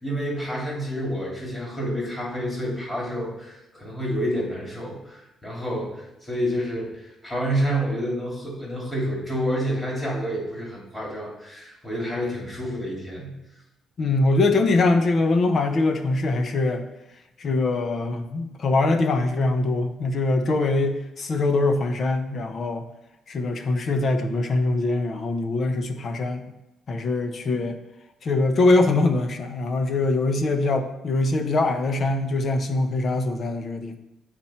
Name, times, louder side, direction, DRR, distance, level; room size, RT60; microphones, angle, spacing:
voice 1, 0.0-13.3, equal, 15° left, -4 dB, 2.5 m, -29 dB
voice 2, 14.0-16.8 17.4-22.9 23.3-26.5 26.9-27.8 28.2-34.0, left 2 dB, 40° left, 7 dB, 0.6 m, -23 dB
8.6 x 4.3 x 4.2 m, 0.91 s
cardioid pair, 145°, 0 cm